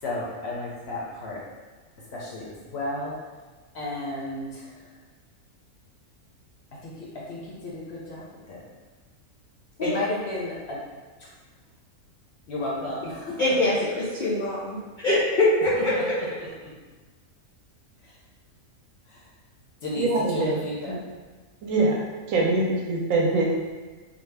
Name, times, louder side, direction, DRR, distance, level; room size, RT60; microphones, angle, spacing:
voice 1, 0.0-1.4 2.1-2.5 2.7-3.1 3.7-4.8 6.8-8.6 9.8-10.8 11.2-11.3 12.5-13.5 15.7-16.0 18.0-18.1 19.1-19.2 19.8-21.0, left 2 dB, 60° left, -5 dB, 0.7 m, -33 dB
voice 2, 13.4-15.9, left 1 dB, 90° left, -9 dB, 0.4 m, -23 dB
voice 3, 20.0-21.0 21.6-22.0 22.3-23.5, right 2 dB, 70° right, -2 dB, 0.9 m, -24 dB
2.6 x 2.2 x 3.2 m, 1.3 s
omnidirectional pair, 1.5 m